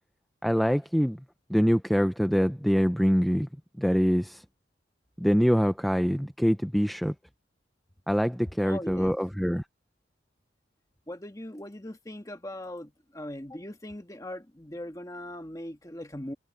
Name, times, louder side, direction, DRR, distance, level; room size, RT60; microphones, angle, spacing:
voice 1, 0.4-1.2 1.5-3.5 3.8-4.4 5.2-7.1 8.1-9.6, equal, ahead, 0.4 m, -24 dB
voice 2, 8.6-9.1 11.1-16.3, left 1 dB, 15° left, 1.5 m, -40 dB
head